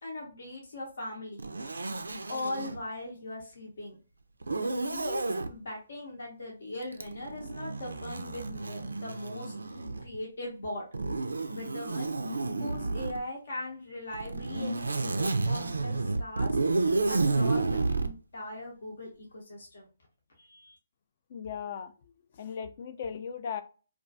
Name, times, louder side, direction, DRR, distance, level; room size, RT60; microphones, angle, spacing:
voice 1, 0.0-1.4 2.3-4.0 4.9-10.8 11.5-16.6 17.1-19.8 20.4-20.8, left 1 dB, 65° left, -1 dB, 0.7 m, -40 dB
Zipper (clothing), 1.4-2.8 4.4-5.5 6.9-10.2 10.9-13.2 14.1-18.1, right 3 dB, 80° right, 0.3 m, -31 dB
voice 2, 21.3-21.9 22.4-23.6, left 7 dB, 45° left, 10 dB, 0.3 m, -37 dB
2.3 x 2.2 x 2.6 m, 0.35 s
figure-of-eight pair, 145°, 0 cm